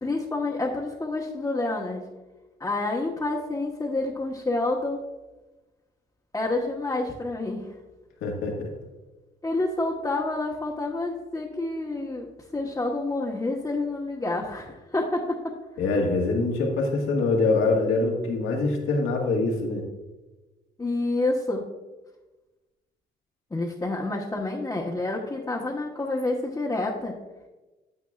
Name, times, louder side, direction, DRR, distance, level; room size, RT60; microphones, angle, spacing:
voice 1, 0.0-2.0 2.6-5.0 6.3-7.7 9.4-12.3 12.5-15.5 20.8-21.6 23.5-27.2, left 2 dB, 15° left, -2 dB, 1.0 m, -28 dB
voice 2, 8.2-8.7 15.8-19.8, left 3 dB, 85° left, 0 dB, 1.7 m, -24 dB
9.5 x 8.0 x 2.4 m, 1.1 s
cardioid pair, 90°, 20 cm